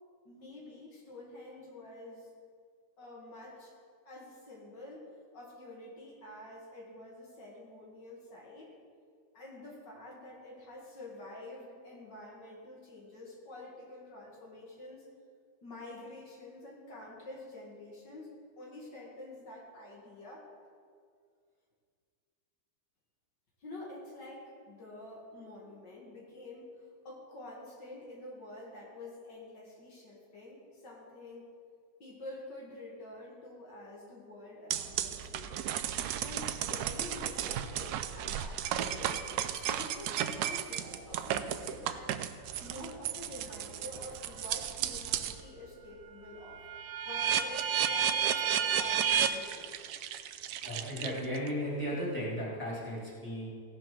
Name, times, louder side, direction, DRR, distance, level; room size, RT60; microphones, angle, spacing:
voice 1, 0.2-2.3 3.0-3.7 4.1-8.7 9.3-15.1 15.6-20.5 23.6-31.5 32.0-35.7 36.2-39.2 39.5-42.3 42.6-46.6 47.0-49.7, left 2 dB, 75° left, -4 dB, 2.6 m, -48 dB
sound 1, 34.7-45.4 45.8-51.5, right 9 dB, 70° right, 1.0 m, -33 dB
voice 2, 50.6-53.5, equal, 5° left, -7 dB, 3.1 m, -35 dB
16.0 x 5.7 x 6.0 m, 2.1 s
omnidirectional pair, 1.9 m